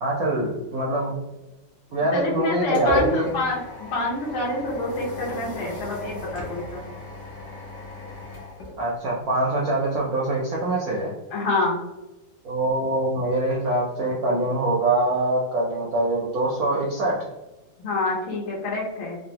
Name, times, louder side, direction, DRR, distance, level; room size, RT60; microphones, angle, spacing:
voice 1, 0.0-1.2 1.9-3.3 8.8-11.1 12.4-17.2, right 2 dB, 75° right, -4 dB, 0.8 m, -24 dB
voice 2, 2.1-6.8 11.3-11.8 17.8-19.2, left 2 dB, 80° left, -5 dB, 1.6 m, -27 dB
sound 1, 2.3-9.4, left 1 dB, 65° left, 1.3 m, -34 dB
3.7 x 2.1 x 2.8 m, 1.0 s
omnidirectional pair, 2.2 m